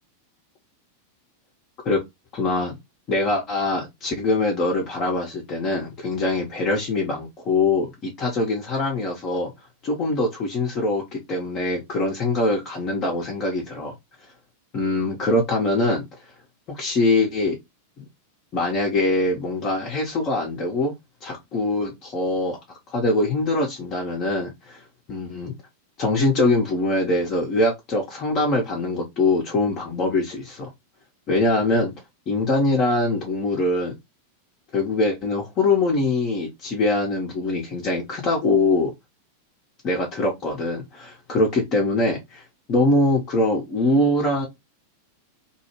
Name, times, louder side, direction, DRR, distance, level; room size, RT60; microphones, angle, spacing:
voice 1, 2.3-2.8 3.1-9.5 9.8-13.9 14.7-16.0 16.7-17.6 18.0-18.1 18.5-20.9 21.2-22.6 22.9-24.8 25.1-25.5 26.0-30.7 31.3-31.9 32.3-33.9 34.7-38.9 39.8-42.4 42.7-44.5, left 2 dB, 35° left, 0.6 m, -23 dB
2.2 x 2.0 x 2.9 m
figure-of-eight pair, 90°, 0 cm